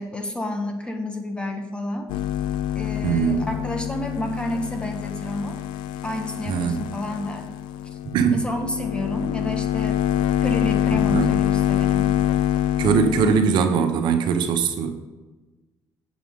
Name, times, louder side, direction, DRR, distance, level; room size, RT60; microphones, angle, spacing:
voice 1, 0.0-2.1 2.7-5.6 6.0-7.4 8.3-10.0 10.4-12.2, left 1 dB, 15° left, 4 dB, 1.4 m, -30 dB
sound 1, 2.1-13.4, left 10 dB, 90° left, 0.4 m, -25 dB
voice 2, 3.0-3.4 6.4-6.8 8.1-8.4 11.1-11.3 12.8-15.0, right 6 dB, 75° right, 6 dB, 1.0 m, -21 dB
7.5 x 7.4 x 3.7 m, 1.2 s
cardioid pair, 100°, 8 cm